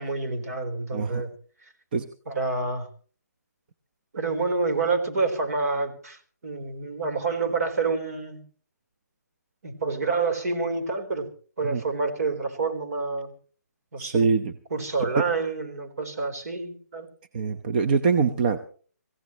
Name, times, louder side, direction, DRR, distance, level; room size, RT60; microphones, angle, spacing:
voice 1, 0.0-1.3 2.3-2.9 4.1-8.4 9.6-11.3 11.6-13.3 13.9-14.3 14.7-17.1, right 4 dB, 60° right, 4 dB, 4.1 m, -28 dB
voice 2, 14.0-14.5 15.1-15.2 17.3-18.6, right 5 dB, 35° right, 8 dB, 0.8 m, -23 dB
25.0 x 16.0 x 3.1 m, 0.41 s
hypercardioid pair, 165°, 9 cm